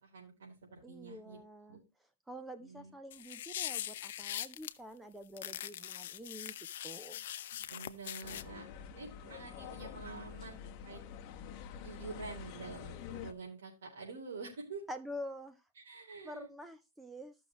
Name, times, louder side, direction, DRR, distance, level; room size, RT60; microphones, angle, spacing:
voice 1, 0.0-1.4 1.7-1.8 2.6-2.9 7.7-11.0 11.7-14.8 15.8-16.5, right 4 dB, 75° right, -4 dB, 3.8 m, -47 dB
voice 2, 0.8-1.8 2.3-6.5 6.8-7.2 14.9-15.6 16.2-17.3, equal, 5° right, 10 dB, 0.4 m, -47 dB
sound 1, 3.1-4.7 5.4-8.4, left 11 dB, 60° left, 0.6 m, -42 dB
sound 2, 8.2-13.3, left 8 dB, 30° left, 1.0 m, -47 dB
14.5 x 6.2 x 3.0 m, 0.25 s
hypercardioid pair, 160°, 0 cm